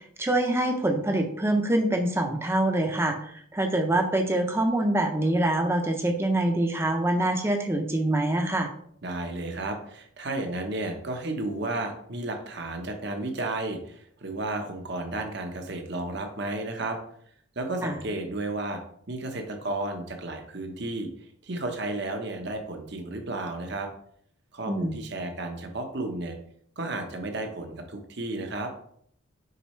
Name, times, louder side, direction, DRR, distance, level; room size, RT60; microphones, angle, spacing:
voice 1, 0.2-3.2 3.5-8.7 17.8-17.9 24.7-24.9, right 1 dB, 10° right, 4 dB, 0.7 m, -25 dB
voice 2, 9.0-17.0 17.6-18.8 19.1-21.1 21.4-23.9 24.5-26.3 26.8-28.7, right 2 dB, 55° right, 4 dB, 1.0 m, -33 dB
6.7 x 5.3 x 3.2 m, 0.64 s
head